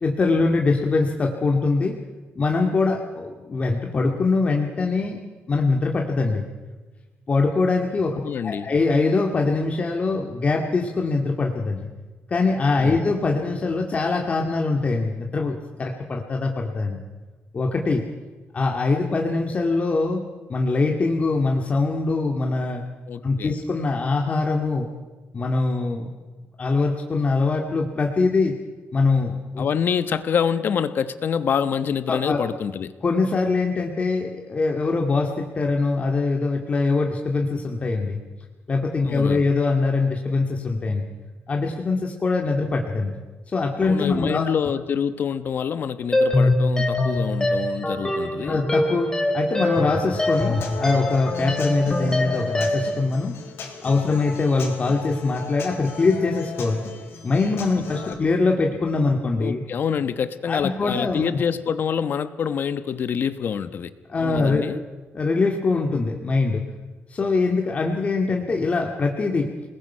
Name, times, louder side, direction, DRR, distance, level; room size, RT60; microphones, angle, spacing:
voice 1, 0.0-2.0 2.4-5.2 5.5-6.5 7.3-11.9 12.3-17.0 17.5-18.1 18.5-20.2 20.5-22.8 23.2-24.9 25.3-26.1 26.6-28.5 28.9-29.7 32.1-32.4 33.0-38.2 38.7-41.1 41.5-43.2 43.5-44.5 48.4-53.3 53.8-56.9 57.2-59.6 60.5-61.2 64.1-64.6 65.1-66.6 67.1-69.5, left 3 dB, 30° left, 1 dB, 2.1 m, -23 dB
voice 2, 8.2-8.7 12.8-13.0 23.1-23.5 29.6-32.9 39.0-39.4 43.8-48.6 58.0-58.1 59.4-63.9 64.2-64.8, left 7 dB, 55° left, 12 dB, 1.2 m, -26 dB
sound 1, 46.1-53.0, left 1 dB, 15° left, 3.4 m, -23 dB
Human voice / Acoustic guitar, 50.1-58.1, left 5 dB, 75° left, 5.0 m, -37 dB
28.5 x 20.0 x 5.7 m, 1.3 s
cardioid pair, 135°, 4 cm